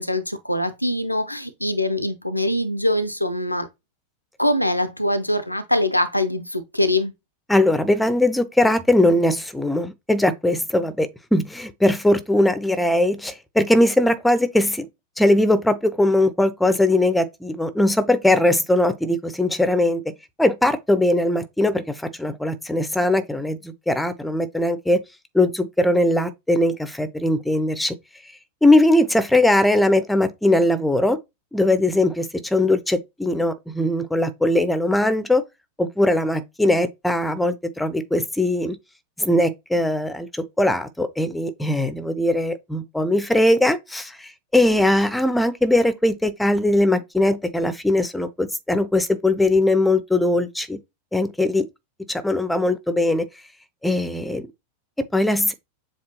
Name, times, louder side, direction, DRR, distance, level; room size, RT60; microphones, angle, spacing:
voice 1, 0.0-3.7 4.4-7.1, left 1 dB, 90° left, 0.5 m, -23 dB
voice 2, 7.5-14.9 15.2-20.0 20.4-25.0 25.3-27.9 28.6-31.2 31.5-35.4 35.8-38.8 39.2-50.8 51.1-51.7 52.1-53.2 53.8-54.5 55.1-55.5, left 1 dB, 5° left, 0.5 m, -20 dB
7.1 x 2.4 x 2.9 m
figure-of-eight pair, 90°, 0 cm